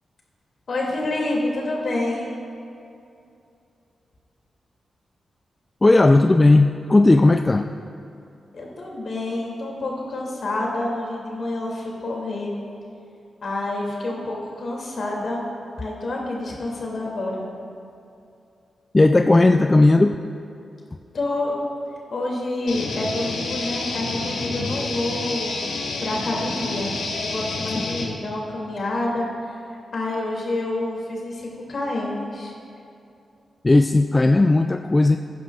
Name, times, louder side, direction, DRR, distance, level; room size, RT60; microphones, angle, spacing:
voice 1, 0.7-2.3 8.5-12.5 13.4-15.4 15.8-17.5 21.1-21.5 22.1-25.7 26.0-26.9 27.2-29.5 29.9-32.5, left 2 dB, 60° left, -2 dB, 2.6 m, -28 dB
voice 2, 5.8-7.7 18.9-20.2 27.7-27.8 33.6-35.2, left 2 dB, 30° left, 7 dB, 0.4 m, -16 dB
sound 1, 22.7-28.1, left 3 dB, 80° left, 1.3 m, -29 dB
16.0 x 10.0 x 2.4 m, 2.6 s
supercardioid pair, 40°, 0 cm